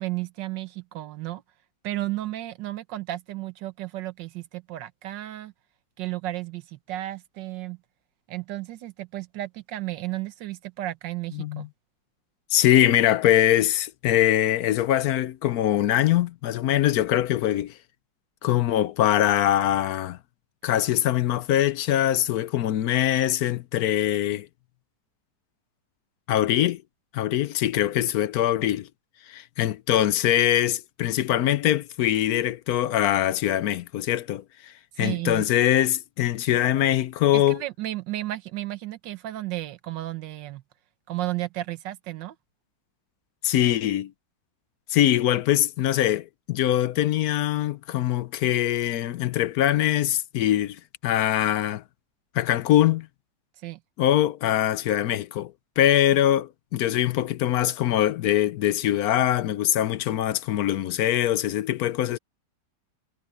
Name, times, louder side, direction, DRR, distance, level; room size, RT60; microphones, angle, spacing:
voice 1, 0.0-1.4 1.8-5.5 6.0-7.8 8.3-11.7 35.0-35.5 37.3-40.6 41.1-42.3 53.6-53.8, right 16 dB, 85° right, 1.6 m, -33 dB
voice 2, 11.3-11.7 12.5-17.8 18.4-20.2 20.6-24.5 26.3-26.8 27.1-28.9 29.3-37.6 43.4-44.1 44.9-51.8 52.3-53.1 54.0-62.2, left 12 dB, 65° left, 1.0 m, -23 dB
omnidirectional pair, 1.9 m